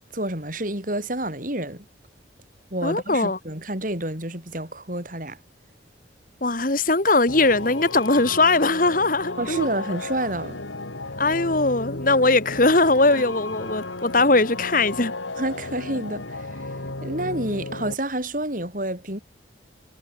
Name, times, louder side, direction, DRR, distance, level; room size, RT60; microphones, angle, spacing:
voice 1, 0.1-1.8 2.7-5.4 9.4-10.6 13.1-13.2 15.4-16.7 17.0-19.2, right 1 dB, 45° right, 6.6 m, -29 dB
voice 2, 2.8-3.4 6.4-9.7 11.2-15.1, left 2 dB, 45° left, 1.9 m, -20 dB
sound 1, 7.3-17.9, left 2 dB, 90° left, 3.3 m, -34 dB
head